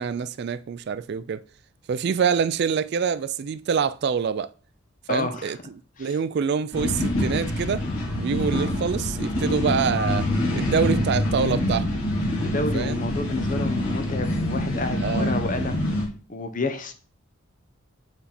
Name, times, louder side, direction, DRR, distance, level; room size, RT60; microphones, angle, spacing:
voice 1, 0.0-1.4 1.9-4.5 5.1-5.6 6.0-7.8 8.2-10.3 10.5-11.9 12.7-13.0 15.0-15.3, right 6 dB, 50° right, 0.3 m, -25 dB
voice 2, 5.1-5.5 6.0-6.2 12.4-15.8 16.3-16.9, left 3 dB, 35° left, 0.8 m, -29 dB
sound 1, 6.7-16.1, left 1 dB, 80° left, 2.6 m, -25 dB
7.9 x 4.2 x 4.2 m
head